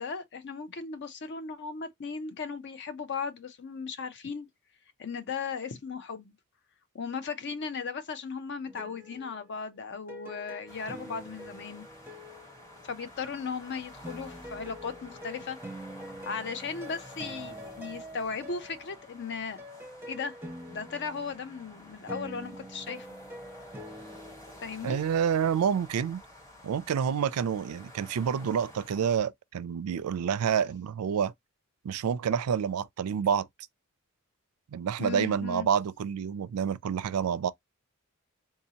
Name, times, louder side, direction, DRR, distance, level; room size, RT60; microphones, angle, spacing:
voice 1, 0.0-4.5 5.0-6.3 6.9-11.8 12.8-15.6 16.2-19.6 20.1-20.3 20.7-23.1 24.6-25.0 35.0-35.7, left 5 dB, 55° left, 0.6 m, -36 dB
sound 1, 8.7-13.4 14.0-25.3, equal, 10° right, 0.7 m, -46 dB
sound 2, 10.7-29.2, left 1 dB, 15° left, 1.3 m, -51 dB
voice 2, 24.8-26.2 26.6-31.3 31.8-33.5 34.7-37.5, right 7 dB, 90° right, 0.4 m, -28 dB
3.8 x 2.7 x 2.8 m
head